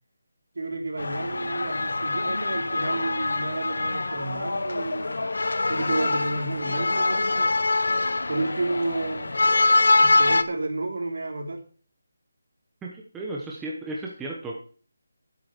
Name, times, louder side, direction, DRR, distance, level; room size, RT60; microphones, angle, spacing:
voice 1, 0.5-5.2 5.7-7.5 8.3-9.3 10.0-11.6, right 2 dB, 60° right, 3 dB, 3.3 m, -31 dB
sound 1, 1.0-10.4, left 2 dB, 75° left, 1.0 m, -24 dB
voice 2, 12.8-14.5, right 2 dB, 5° right, -3 dB, 1.0 m, -34 dB
9.8 x 8.2 x 6.5 m, 0.43 s
figure-of-eight pair, 175°, 0 cm